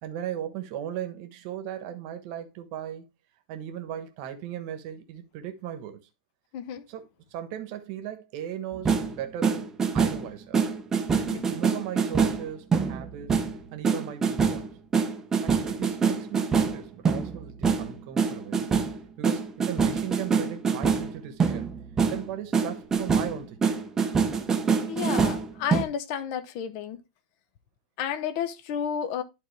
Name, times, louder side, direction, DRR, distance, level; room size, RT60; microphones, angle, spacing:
voice 1, 0.0-3.0 3.5-6.1 6.9-10.6 11.3-13.4 13.7-14.8 15.4-18.7 19.2-21.7 22.1-23.6, right 10 dB, 40° right, 1.2 m, -37 dB
voice 2, 6.5-6.8 11.1-11.4 24.9-27.0 28.0-29.2, left 8 dB, 40° left, 0.8 m, -31 dB
sound 1, 8.7-10.3 10.5-22.3 22.5-25.8, right 5 dB, 10° right, 0.8 m, -25 dB
11.5 x 3.9 x 3.3 m
supercardioid pair, 165°, 5 cm